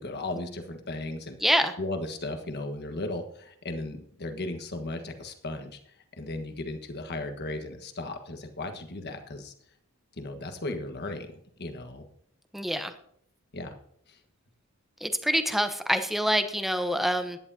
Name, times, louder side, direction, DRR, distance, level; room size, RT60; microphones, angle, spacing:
voice 1, 0.0-1.4 1.8-5.8 6.2-9.5 10.2-11.3 11.6-12.1 13.5-13.7 14.1-14.2, left 2 dB, 50° left, 7 dB, 1.5 m, -36 dB
voice 2, 1.4-1.7 12.5-12.9 15.0-17.4, equal, ahead, 7 dB, 0.9 m, -26 dB
16.5 x 11.0 x 2.8 m, 0.66 s
head